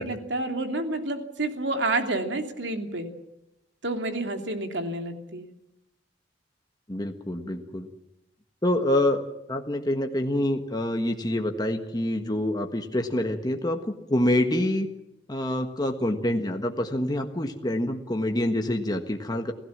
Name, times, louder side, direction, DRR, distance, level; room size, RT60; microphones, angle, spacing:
voice 1, 0.0-3.1 3.8-5.4, right 2 dB, 70° right, 5 dB, 2.9 m, -29 dB
voice 2, 6.9-7.9 8.6-14.9 15.3-19.5, left 1 dB, 20° left, 4 dB, 1.5 m, -26 dB
29.0 x 16.0 x 7.4 m, 0.87 s
head